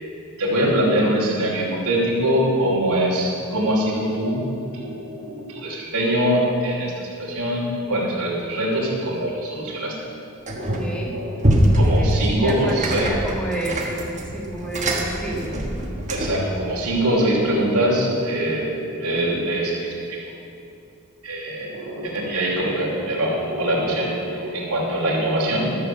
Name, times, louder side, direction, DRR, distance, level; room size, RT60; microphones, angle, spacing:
voice 1, 0.4-4.4 4.7-9.9 10.5-11.4 11.7-13.1 16.1-20.2 21.2-25.8, right 1 dB, 85° right, -5 dB, 2.8 m, -23 dB
sound 1, 10.5-11.0 11.4-16.5, equal, 35° right, 1.3 m, -22 dB
voice 2, 10.8-11.2 11.9-15.6, right 1 dB, 5° left, -3 dB, 1.7 m, -30 dB
13.0 x 6.8 x 7.0 m, 2.6 s
head